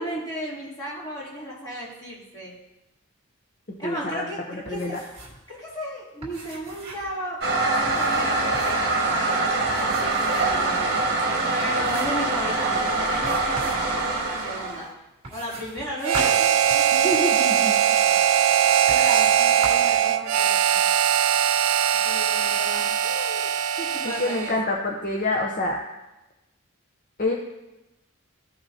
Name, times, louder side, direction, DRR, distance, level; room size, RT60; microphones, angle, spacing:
voice 1, 0.0-2.5 3.8-5.0 5.5-11.1 11.5-14.9 15.3-18.2 18.9-20.9 22.0-23.5 23.8-24.6, equal, 20° left, -8 dB, 2.8 m, -35 dB
voice 2, 3.8-5.0 16.9-17.7 24.2-25.8 27.2-27.3, left 2 dB, 40° left, 0 dB, 0.7 m, -27 dB
sound 1, 4.7-5.4 5.7-5.8 6.2-7.2 7.9-8.9 9.7-10.7 11.2-11.3 11.8-12.3 13.2-13.9 15.2-17.3 18.0-18.1 18.9-19.4 19.6-20.0, right 1 dB, 25° right, 2.2 m, -38 dB
Toilet flush, 7.4-14.9, right 3 dB, 50° right, 1.4 m, -24 dB
Harmonica, 16.0-24.7, right 9 dB, 80° right, 0.4 m, -21 dB
14.5 x 5.8 x 2.8 m, 0.98 s
head